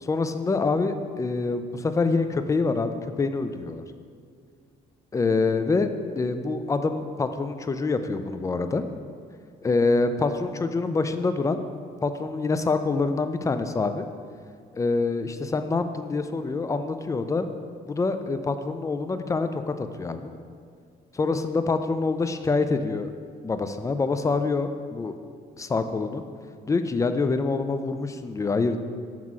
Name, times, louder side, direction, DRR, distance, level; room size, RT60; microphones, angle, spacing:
voice 1, 0.0-3.8 5.1-5.9 6.2-8.8 9.6-11.6 12.0-14.1 14.7-17.5 17.9-20.3 21.1-23.1 23.4-25.1 25.6-26.2 26.7-28.8, left 3 dB, 20° left, 9 dB, 0.4 m, -26 dB
7.4 x 3.6 x 6.0 m, 2.1 s
cardioid pair, 110°, 17 cm